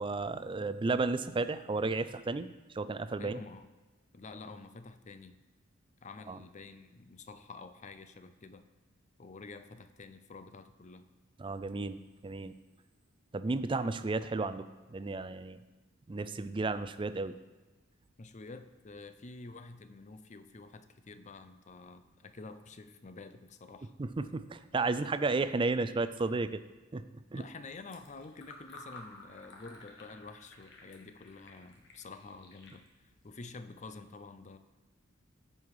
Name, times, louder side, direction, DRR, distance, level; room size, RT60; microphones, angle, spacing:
voice 1, 0.0-2.5 2.7-3.4 6.3-6.4 11.4-12.5 13.3-15.6 16.1-17.4 24.0-26.6 26.9-27.0 27.3-27.4, right 3 dB, 25° right, 12 dB, 0.4 m, -33 dB
voice 2, 3.2-3.7 4.1-5.4 6.0-8.6 9.2-11.1 18.2-23.9 27.3-34.6, left 3 dB, 35° left, 10 dB, 0.6 m, -49 dB
Fill (with liquid), 27.6-33.8, left 2 dB, 60° left, 1.5 m, -55 dB
14.0 x 5.5 x 4.8 m, 1.2 s
head